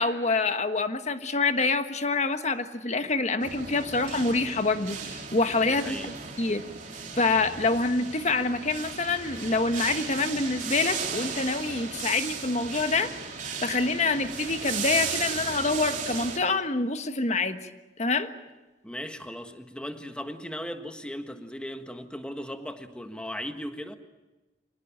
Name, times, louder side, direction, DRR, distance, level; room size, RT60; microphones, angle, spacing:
voice 1, 0.0-6.0 6.4-6.6 7.2-13.1 13.6-17.6 18.0-18.3, left 3 dB, 40° left, 8 dB, 1.4 m, -26 dB
sound 1, 3.4-16.4, right 6 dB, 45° right, 3.1 m, -36 dB
voice 2, 5.6-6.3 18.8-24.0, equal, 5° left, 7 dB, 1.5 m, -37 dB
26.0 x 19.0 x 9.0 m, 1.1 s
head